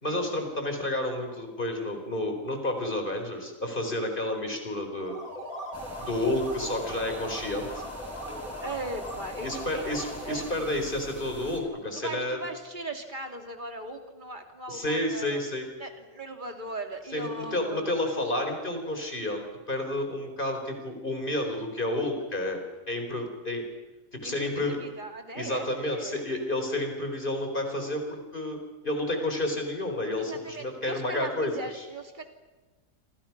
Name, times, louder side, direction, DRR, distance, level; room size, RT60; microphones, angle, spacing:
voice 1, 0.0-5.2 6.0-7.8 9.4-12.4 14.7-15.7 17.1-22.6 22.9-23.6 24.1-24.8 25.3-28.6 28.8-31.8, left 1 dB, 35° left, 4 dB, 4.5 m, -30 dB
sound 1, 4.9-10.6, equal, 75° right, 4.5 m, -40 dB
sound 2, 5.7-11.6, equal, 10° left, 4.6 m, -43 dB
voice 2, 8.6-9.8 10.2-10.5 11.9-15.4 15.8-18.0 24.2-26.2 30.2-32.2, right 2 dB, 35° right, 4 dB, 3.0 m, -39 dB
28.0 x 26.5 x 6.1 m, 1.2 s
omnidirectional pair, 1.5 m